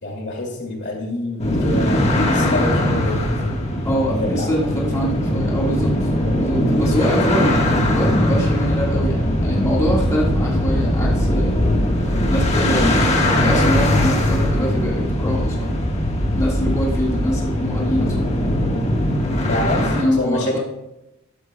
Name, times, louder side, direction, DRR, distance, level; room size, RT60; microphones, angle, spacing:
voice 1, 0.0-3.8 4.1-4.5 19.5-20.6, left 1 dB, 55° left, 0 dB, 2.5 m, -27 dB
sound 1, 1.4-20.0, left 1 dB, 30° left, 1.5 m, -20 dB
voice 2, 3.8-6.1 6.4-11.6 12.0-12.9 13.3-15.7 16.3-18.3 19.7-20.6, equal, 15° left, -5 dB, 1.7 m, -24 dB
14.0 x 12.0 x 2.3 m, 0.92 s
head